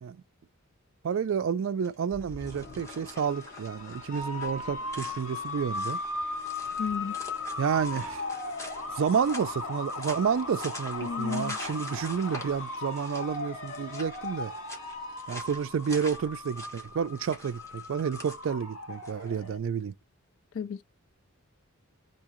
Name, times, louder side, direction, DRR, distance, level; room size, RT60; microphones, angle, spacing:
voice 1, 1.0-6.0 7.6-8.2 8.9-14.5 15.3-19.9, right 7 dB, 60° right, 0.3 m, -30 dB
sound 1, 1.7-19.4, left 1 dB, 15° left, 1.0 m, -47 dB
sound 2, 2.1-16.5, left 4 dB, 40° left, 2.1 m, -47 dB
sound 3, 4.1-19.6, left 2 dB, 80° left, 1.0 m, -37 dB
voice 2, 6.8-7.2 11.0-11.6 20.5-20.8, left 6 dB, 65° left, 0.3 m, -33 dB
3.4 x 2.8 x 3.0 m
head